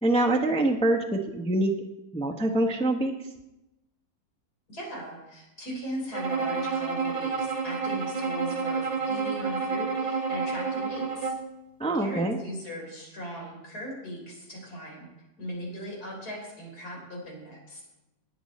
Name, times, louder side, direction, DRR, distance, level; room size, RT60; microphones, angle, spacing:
voice 1, 0.0-1.7 2.1-3.1 11.8-12.4, right 1 dB, 10° left, 1 dB, 0.3 m, -25 dB
voice 2, 4.7-11.3 12.0-15.0 15.4-17.8, equal, 55° left, -1 dB, 4.3 m, -38 dB
Bowed string instrument, 6.1-11.5, right 5 dB, 35° right, 1.4 m, -29 dB
18.0 x 7.1 x 4.2 m, 0.96 s
omnidirectional pair, 2.0 m